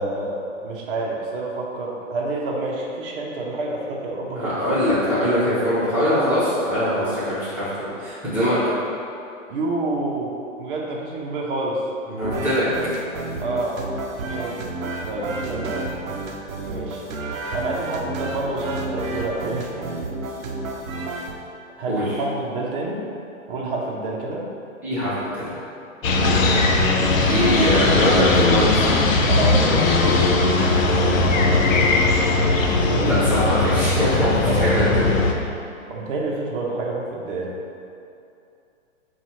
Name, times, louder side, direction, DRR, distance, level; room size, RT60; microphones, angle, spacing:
voice 1, 0.0-4.5 7.0-7.2 9.5-10.3 10.6-11.8 13.4-13.8 14.2-14.6 15.1-15.9 16.6-17.0 17.5-19.9 21.8-23.0 23.5-24.4 26.2-26.4 29.3-29.7 32.7-33.4 34.4-34.7 35.9-37.5, right 2 dB, 45° right, -3 dB, 0.6 m, -28 dB
voice 2, 4.3-8.6 12.1-12.6 21.9-22.2 24.8-25.5 27.3-29.1 30.6-31.8 33.0-35.1, equal, 5° right, -14 dB, 0.9 m, -23 dB
sound 1, 12.2-21.3, right 2 dB, 85° right, 0.6 m, -31 dB
sound 2, 26.0-35.3, left 3 dB, 80° left, 0.6 m, -19 dB
5.3 x 2.3 x 3.0 m, 2.6 s
hypercardioid pair, 140°, 39 cm